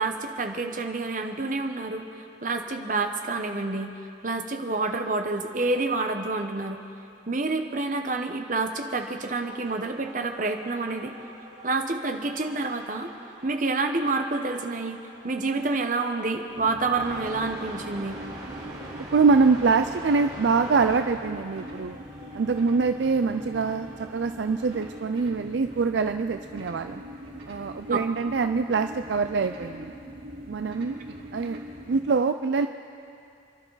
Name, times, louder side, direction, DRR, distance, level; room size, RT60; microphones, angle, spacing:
voice 1, 0.0-2.1 2.4-4.0 4.2-6.8 7.3-11.1 11.6-13.1 13.4-15.0 15.2-18.2 27.9-28.0, right 3 dB, 45° right, 5 dB, 1.0 m, -28 dB
sound 1, 9.3-25.0, right 1 dB, 25° right, 4.1 m, -45 dB
sound 2, 16.5-32.0, equal, 85° right, 4.0 m, -42 dB
voice 2, 19.1-22.0 22.3-27.0 27.5-29.9 30.5-31.0 31.3-31.6 31.9-32.7, right 4 dB, 70° right, 8 dB, 0.4 m, -24 dB
28.5 x 11.5 x 4.0 m, 2.6 s
head